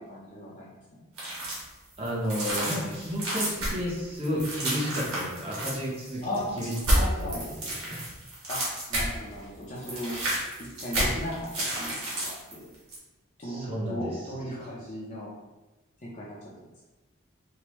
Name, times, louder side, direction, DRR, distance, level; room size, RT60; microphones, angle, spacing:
voice 1, 0.1-0.7 6.2-6.6 6.9-7.5 8.5-8.6 8.9-10.1 10.6-11.9 12.2-12.7 13.4-15.3 16.0-16.4, left 1 dB, 35° left, -6 dB, 0.6 m, -36 dB
sound 1, 1.2-1.7 2.0-9.3 9.6-12.5 12.9-13.0, right 1 dB, 80° right, 1.5 m, -30 dB
voice 2, 2.0-6.3 6.6-7.6 7.8-8.0 13.4-14.1, equal, 25° right, -5 dB, 0.9 m, -32 dB
4.5 x 2.2 x 3.0 m, 1.1 s
head